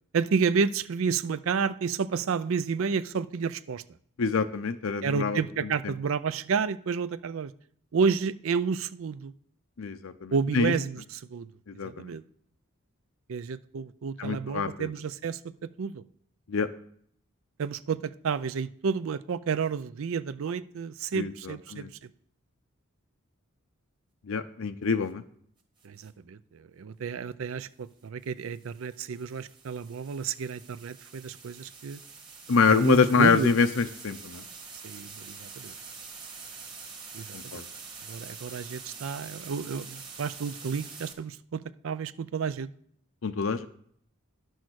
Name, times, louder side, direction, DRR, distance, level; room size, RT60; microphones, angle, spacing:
voice 1, 0.1-3.8 5.0-7.5 7.9-9.3 10.3-11.5 11.8-12.2 13.3-15.4 15.8-16.0 17.6-22.1 25.8-32.0 32.7-33.5 34.8-35.7 37.1-37.6 38.1-42.7, right 5 dB, 65° right, 16 dB, 0.4 m, -30 dB
voice 2, 4.2-5.4 9.8-10.7 11.7-12.1 14.2-14.9 16.5-16.7 21.1-21.9 24.3-25.2 32.5-34.4 37.3-37.6 43.2-43.7, left 5 dB, 70° left, 9 dB, 0.6 m, -25 dB
sound 1, 25.8-26.1 28.2-41.1, right 5 dB, 20° right, 1.4 m, -45 dB
10.5 x 6.3 x 6.3 m, 0.64 s
head